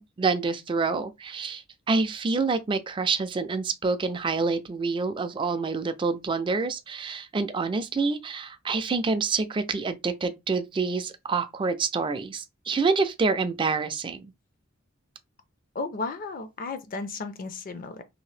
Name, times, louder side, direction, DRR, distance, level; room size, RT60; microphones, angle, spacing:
voice 1, 0.0-14.3, right 4 dB, 25° right, 0.3 m, -27 dB
voice 2, 15.7-18.0, left 3 dB, 45° left, 0.4 m, -34 dB
2.8 x 2.6 x 3.2 m
head